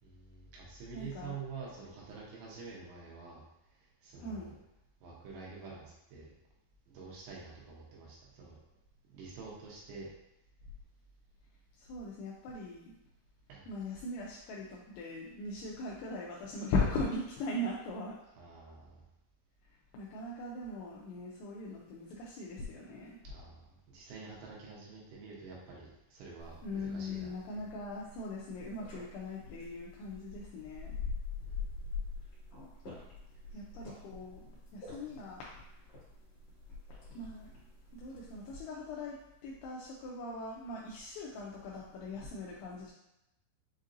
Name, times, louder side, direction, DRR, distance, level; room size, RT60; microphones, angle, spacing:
voice 1, 0.0-3.4 3.8-4.5 5.0-6.3 6.9-8.6 9.1-10.1 13.5-13.7 18.4-19.1 23.2-27.6 31.4-31.8 33.5-33.6, right 4 dB, 75° right, -5 dB, 3.1 m, -48 dB
voice 2, 0.9-1.4 4.2-4.5 11.8-12.9 13.7-18.2 19.9-23.2 26.6-31.0 33.5-34.4 34.7-35.5 37.1-37.5 37.9-42.9, left 2 dB, 85° left, -4 dB, 2.7 m, -39 dB
sound 1, 26.4-38.5, left 4 dB, 60° left, 1.8 m, -45 dB
7.3 x 2.7 x 2.5 m, 0.89 s
omnidirectional pair, 5.8 m